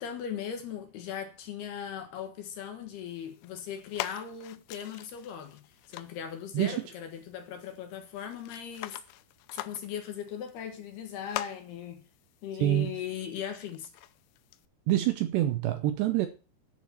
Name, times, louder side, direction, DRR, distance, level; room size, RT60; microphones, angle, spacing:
voice 1, 0.0-9.0 9.5-12.0 12.4-13.9, left 8 dB, 65° left, 2.9 m, -38 dB
sound 1, 3.1-14.7, left 15 dB, 85° left, 3.2 m, -45 dB
voice 2, 12.6-13.0 14.9-16.3, right 14 dB, 80° right, 2.6 m, -26 dB
9.8 x 6.8 x 7.2 m
omnidirectional pair, 5.6 m